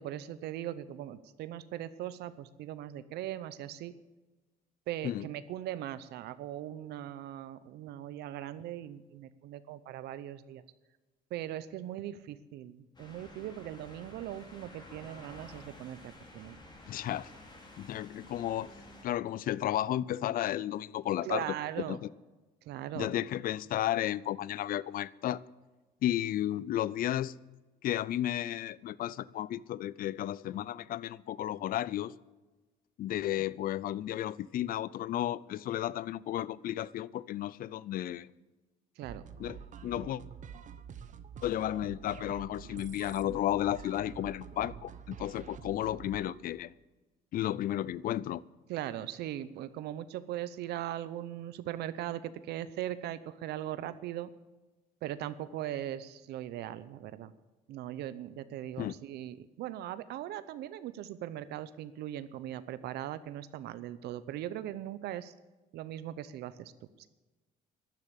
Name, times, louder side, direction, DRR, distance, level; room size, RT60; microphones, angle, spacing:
voice 1, 0.0-3.9 4.9-10.6 11.3-16.6 21.2-22.0 22.6-23.1 33.3-33.5 39.0-39.2 48.7-54.3 55.0-57.3 57.7-65.3 65.7-66.7 67.0-67.1, right 12 dB, 80° right, 0.7 m, -39 dB
sound 1, 12.9-19.0, left 2 dB, 25° left, 3.6 m, -52 dB
voice 2, 16.9-17.3 17.8-18.7 19.0-21.4 21.9-22.1 23.0-25.4 26.0-27.3 27.8-32.1 33.0-38.3 39.4-40.2 41.4-46.7 47.3-48.4 58.8-59.0, left 12 dB, 60° left, 0.5 m, -33 dB
sound 2, 39.0-46.4, right 7 dB, 45° right, 1.0 m, -47 dB
12.0 x 10.5 x 8.2 m
cardioid pair, 110°, 17 cm